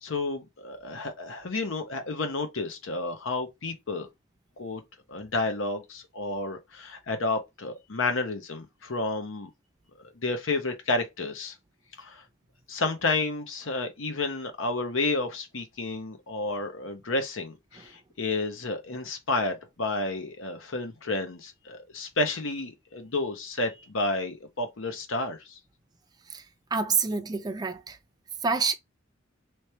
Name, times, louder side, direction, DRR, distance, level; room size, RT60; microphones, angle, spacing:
voice 1, 0.0-4.1 4.6-4.8 5.1-9.5 10.2-11.5 12.0-12.2 12.7-25.6, left 2 dB, 70° left, 0.8 m, -31 dB
voice 2, 26.7-28.0 28.4-28.7, right 5 dB, 20° right, 0.5 m, -27 dB
3.3 x 3.1 x 2.9 m
head